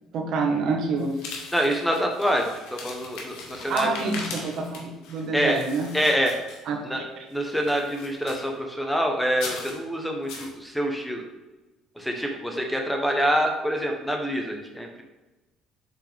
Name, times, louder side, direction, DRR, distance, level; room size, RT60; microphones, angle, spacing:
voice 1, 0.1-1.4 3.7-5.9 6.7-7.0, right 3 dB, 60° right, 2 dB, 1.4 m, -27 dB
sound 1, 1.0-6.9 7.3-8.6 9.3-9.8 10.3-10.5, left 4 dB, 80° left, 1.5 m, -40 dB
voice 2, 1.5-4.1 5.3-5.6 5.9-6.3 6.8-7.0 7.3-11.2 12.0-15.0, equal, 5° left, 2 dB, 1.1 m, -26 dB
7.6 x 4.8 x 3.6 m, 1.1 s
cardioid pair, 100°, 0 cm